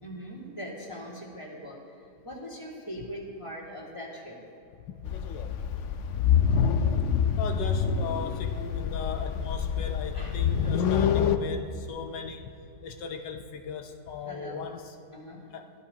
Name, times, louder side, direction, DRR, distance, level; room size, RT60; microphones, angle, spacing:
voice 1, 0.0-2.0 2.2-4.4 10.1-10.8 14.2-14.7 15.1-15.4, equal, 15° left, -3 dB, 2.2 m, -41 dB
voice 2, 4.9-5.2 6.3-6.5 7.4-12.6 12.8-15.0 15.5-15.7, left 6 dB, 85° left, 5 dB, 1.4 m, -38 dB
sound 1, 5.0-11.4, left 7 dB, 65° left, 0.7 m, -26 dB
22.5 x 15.0 x 2.9 m, 2.4 s
omnidirectional pair, 1.8 m